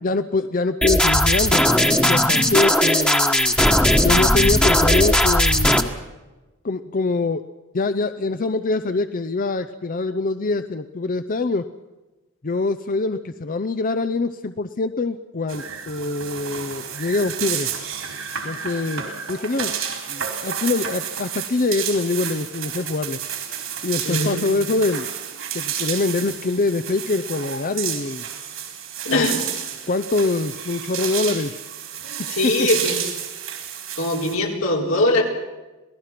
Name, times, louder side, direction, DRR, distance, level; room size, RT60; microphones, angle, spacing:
voice 1, 0.0-1.6 2.1-3.6 4.0-5.7 6.6-7.4 7.7-11.7 12.4-17.7 18.4-19.7 20.1-23.2 23.8-25.1 25.5-28.3 29.1-29.4 29.9-31.6 32.2-32.7, left 3 dB, 45° left, 10 dB, 0.7 m, -24 dB
sound 1, 0.8-5.8, left 1 dB, 5° left, 1.4 m, -17 dB
sound 2, 15.5-34.4, right 8 dB, 80° right, 4.4 m, -31 dB
voice 2, 24.0-24.5 29.0-29.4 32.3-32.9 34.0-35.2, left 2 dB, 85° left, 0 dB, 4.3 m, -21 dB
27.0 x 18.5 x 5.9 m, 1.1 s
head